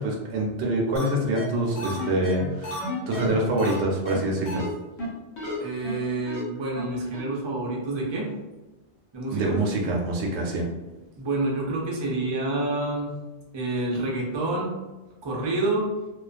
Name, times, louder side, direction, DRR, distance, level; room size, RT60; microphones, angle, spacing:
voice 1, 0.0-4.7 9.3-10.7, right 1 dB, 85° right, -1 dB, 0.9 m, -26 dB
sound 1, 1.0-1.1 1.4-1.5 1.8-3.8 4.1-4.2 4.5-4.7 5.0-5.1 5.4-5.6 5.8-5.9 6.3-6.4 6.8-6.9 7.1-7.2, left 1 dB, 80° left, 1.0 m, -33 dB
voice 2, 5.6-8.3 9.1-9.6 11.2-13.2 13.5-14.7 15.2-15.9, right 2 dB, 40° right, -3 dB, 0.4 m, -28 dB
2.4 x 2.2 x 2.4 m, 1.1 s
omnidirectional pair, 1.1 m